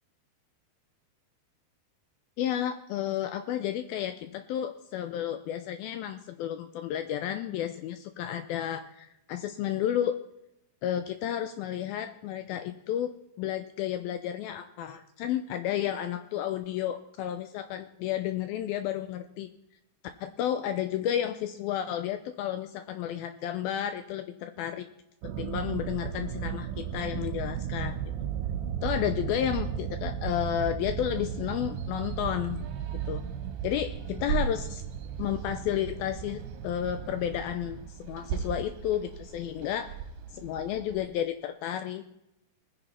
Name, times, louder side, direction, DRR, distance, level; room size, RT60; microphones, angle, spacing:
voice 1, 2.4-10.2 10.8-13.1 13.4-19.5 20.2-24.9 25.2-28.0 28.8-32.6 33.1-33.2 33.6-34.8 35.2-40.0 40.3-42.1, left 11 dB, 80° left, 10 dB, 2.2 m, -32 dB
sound 1, 25.2-37.9, right 9 dB, 85° right, 2.9 m, -35 dB
sound 2, 31.1-41.1, right 7 dB, 70° right, 3.0 m, -39 dB
21.5 x 9.8 x 4.3 m, 0.86 s
omnidirectional pair, 4.8 m